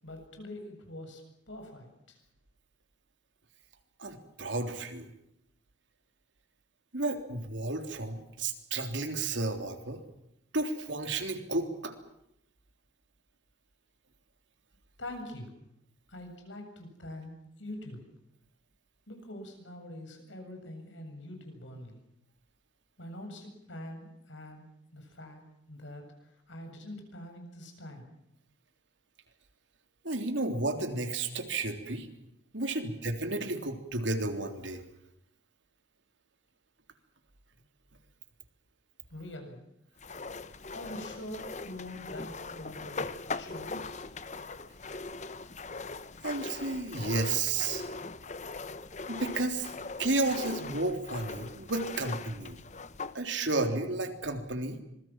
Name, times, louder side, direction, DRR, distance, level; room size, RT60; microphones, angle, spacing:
voice 1, 0.0-2.2 15.0-15.5 16.1-18.0 19.1-22.0 23.0-24.7 24.9-25.4 25.7-28.1 39.1-39.6 40.7-44.0, left 1 dB, 75° left, 4 dB, 7.7 m, -44 dB
voice 2, 4.0-5.1 6.9-10.0 10.5-11.9 30.0-32.1 32.5-34.8 46.2-47.9 49.1-49.7 50.0-52.6 53.1-54.8, right 2 dB, 75° right, 6 dB, 3.5 m, -32 dB
sound 1, 40.0-53.2, left 3 dB, 35° left, 0.9 m, -40 dB
26.0 x 21.5 x 7.6 m, 0.79 s
head